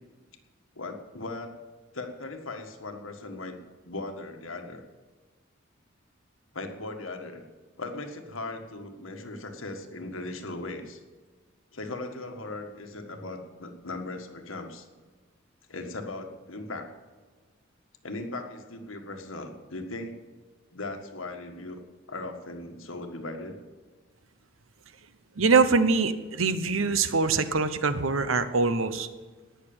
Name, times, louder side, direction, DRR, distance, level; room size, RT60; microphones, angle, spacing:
voice 1, 0.7-1.5 1.9-3.6 3.8-4.8 6.5-7.5 7.8-11.0 11.7-14.9 15.7-16.9 18.0-20.2 20.7-23.6, left 2 dB, 85° left, 5 dB, 1.7 m, -38 dB
voice 2, 25.4-29.1, right 4 dB, 90° right, 12 dB, 1.0 m, -23 dB
18.0 x 6.7 x 8.9 m, 1.4 s
head